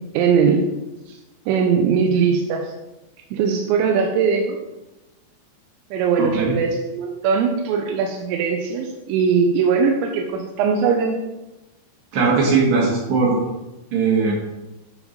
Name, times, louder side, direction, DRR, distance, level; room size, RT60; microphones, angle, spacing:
voice 1, 0.1-0.6 1.1-1.2 1.5-2.7 3.3-4.6 5.9-11.2, right 6 dB, 85° right, 2 dB, 3.0 m, -20 dB
voice 2, 12.1-13.4 13.9-14.3, right 4 dB, 65° right, -3 dB, 3.2 m, -18 dB
9.5 x 3.5 x 5.1 m, 1.0 s
omnidirectional pair, 5.3 m